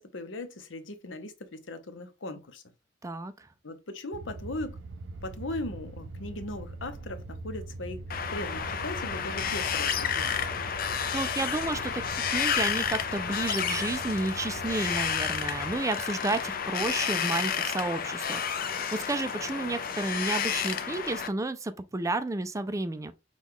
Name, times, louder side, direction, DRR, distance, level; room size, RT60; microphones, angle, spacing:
voice 1, 0.0-2.6 3.6-4.8 5.2-8.0 8.3-10.4, left 2 dB, 80° left, 0.8 m, -38 dB
voice 2, 3.0-3.5 11.1-23.1, right 2 dB, 15° right, 0.4 m, -32 dB
sound 1, 4.1-15.8, right 3 dB, 85° right, 0.5 m, -42 dB
Wind, 8.1-21.3, left 7 dB, 50° left, 0.5 m, -31 dB
6.1 x 2.3 x 3.7 m
head